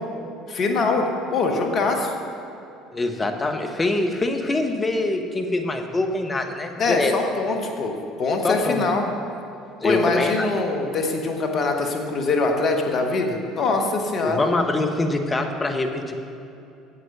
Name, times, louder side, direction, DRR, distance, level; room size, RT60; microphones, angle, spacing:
voice 1, 0.5-2.1 6.8-9.1 9.8-14.4, left 3 dB, 50° left, 3 dB, 1.5 m, -23 dB
voice 2, 2.9-7.1 8.4-8.8 9.8-10.5 14.2-16.2, left 2 dB, 20° left, 4 dB, 1.2 m, -24 dB
9.4 x 8.0 x 6.7 m, 2.7 s
hypercardioid pair, 65°, 0 cm